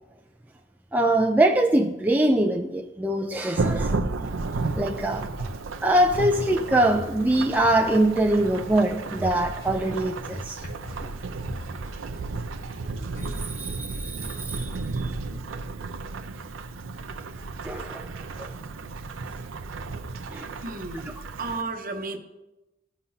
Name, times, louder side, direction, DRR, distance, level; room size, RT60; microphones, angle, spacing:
voice 1, 0.9-3.9 4.8-5.3 5.8-10.6 13.6-14.7 15.0-15.1 17.6-18.1 18.4-18.5 20.3-20.5, right 1 dB, 10° right, 0.4 m, -23 dB
sound 1, 3.3-13.3, left 1 dB, 85° left, 2.8 m, -42 dB
Thunderstorm / Rain, 3.6-21.6, right 3 dB, 85° right, 0.6 m, -33 dB
voice 2, 20.6-22.2, right 3 dB, 45° right, 0.8 m, -33 dB
15.0 x 5.6 x 2.7 m
head